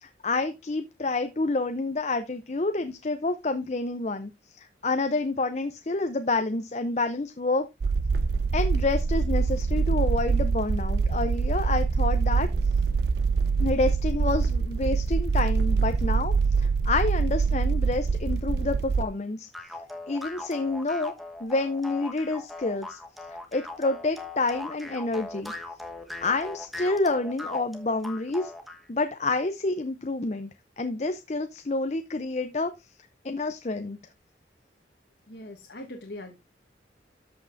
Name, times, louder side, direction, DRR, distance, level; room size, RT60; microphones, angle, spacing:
voice 1, 0.0-4.3 4.6-7.7 8.5-12.5 13.6-19.5 20.1-21.1 21.4-23.0 23.5-25.5 26.2-28.5 28.9-30.5 30.8-32.7 33.2-34.0, left 3 dB, 40° left, 8 dB, 0.6 m, -28 dB
sound 1, 7.8-19.0, right 4 dB, 65° right, 0.4 m, -24 dB
sound 2, 19.5-28.8, left 2 dB, ahead, 1.2 m, -39 dB
voice 2, 35.3-36.3, left 1 dB, 80° left, 3 dB, 1.3 m, -41 dB
13.5 x 5.6 x 2.6 m, 0.23 s
head